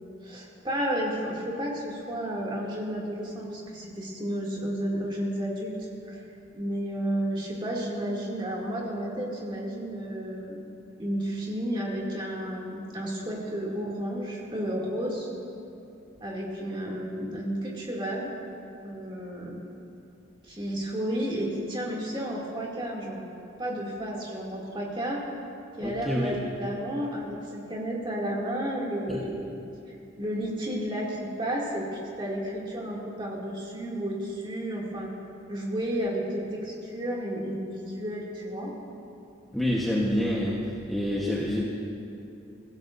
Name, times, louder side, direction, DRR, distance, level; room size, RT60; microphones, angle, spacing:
voice 1, 0.2-6.2 6.5-10.6 11.0-15.3 16.2-18.3 18.8-19.6 20.4-23.3 23.6-25.2 25.8-29.6 30.2-35.1 35.5-38.7, equal, 25° right, -4 dB, 2.5 m, -32 dB
voice 2, 25.8-26.4 29.1-29.2 39.5-41.6, left 1 dB, ahead, -6 dB, 1.1 m, -27 dB
23.0 x 15.5 x 2.6 m, 2.7 s
head